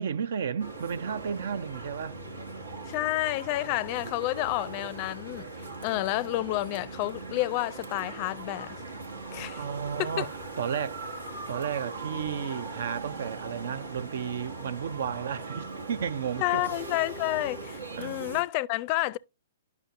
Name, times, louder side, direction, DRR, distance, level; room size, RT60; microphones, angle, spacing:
voice 1, 0.0-2.2 9.6-16.8 17.9-18.2, right 7 dB, 65° right, 0.4 m, -33 dB
sound 1, 0.6-18.4, right 3 dB, 85° right, 1.1 m, -40 dB
voice 2, 2.9-5.5 5.8-8.8 9.3-9.6 10.0-10.3 16.4-19.2, left 18 dB, 40° left, 0.4 m, -30 dB
10.0 x 5.9 x 2.5 m
figure-of-eight pair, 120°, 0 cm